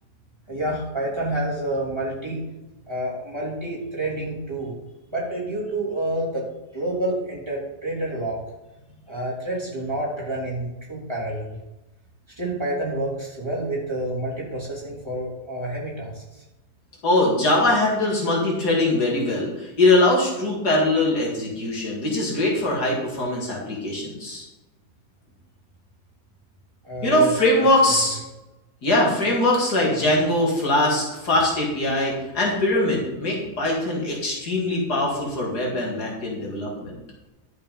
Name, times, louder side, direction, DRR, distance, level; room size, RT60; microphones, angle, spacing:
voice 1, 0.5-2.4 2.9-4.7 5.1-6.4 6.7-8.4 9.1-11.6 12.4-16.2 26.8-27.3, right 1 dB, 15° right, -5 dB, 3.1 m, -28 dB
voice 2, 17.0-24.4 27.0-28.2 28.8-36.9, left 1 dB, 75° left, -3 dB, 3.1 m, -22 dB
11.0 x 6.4 x 5.4 m, 1.0 s
omnidirectional pair, 1.7 m